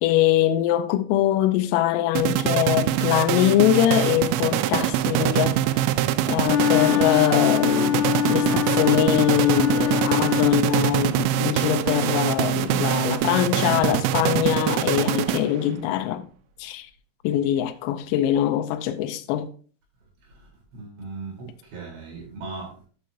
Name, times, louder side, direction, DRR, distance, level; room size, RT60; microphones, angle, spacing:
voice 1, 0.0-5.6 6.3-16.2 16.6-16.9 17.2-19.5, left 12 dB, 90° left, 3.3 m, -23 dB
sound 1, 2.2-15.8, right 13 dB, 90° right, 2.6 m, -24 dB
Wind instrument woodwind instrument, 6.4-10.9, left 10 dB, 70° left, 2.4 m, -24 dB
voice 2, 20.3-22.9, right 3 dB, 60° right, 6.1 m, -38 dB
11.5 x 7.7 x 2.8 m
omnidirectional pair, 5.9 m